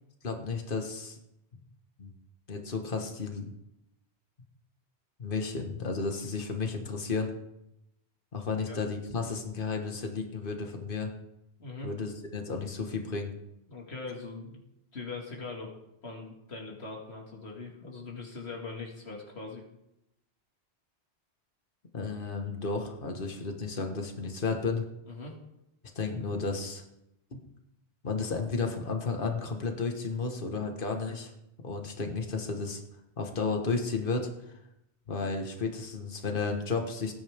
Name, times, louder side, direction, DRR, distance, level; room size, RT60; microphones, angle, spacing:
voice 1, 0.2-1.2 2.0-2.1 2.5-3.5 5.2-7.3 8.3-11.1 11.8-13.3 21.9-24.8 25.9-26.8 27.3-27.4 28.0-31.3 31.6-32.8 33.2-34.3 35.1-37.1, left 4 dB, 50° left, 3 dB, 1.8 m, -33 dB
voice 2, 11.6-11.9 13.7-14.6 14.9-15.7 16.0-19.6 25.1-25.4, left 3 dB, 70° left, -1 dB, 2.4 m, -41 dB
19.0 x 10.0 x 3.6 m, 0.84 s
omnidirectional pair, 1.1 m